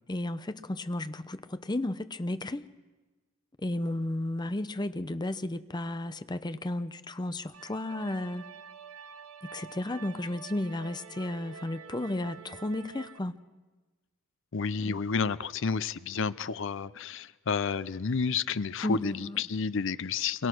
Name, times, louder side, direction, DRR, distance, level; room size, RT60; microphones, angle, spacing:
voice 1, 0.1-2.7 3.6-8.4 9.4-13.4 14.8-15.0 18.8-19.4, left 1 dB, 20° left, 0.7 m, -33 dB
sound 1, 7.5-13.2, right 6 dB, 90° right, 1.0 m, -47 dB
voice 2, 14.5-20.5, left 5 dB, 65° left, 0.6 m, -30 dB
27.5 x 22.5 x 6.2 m
head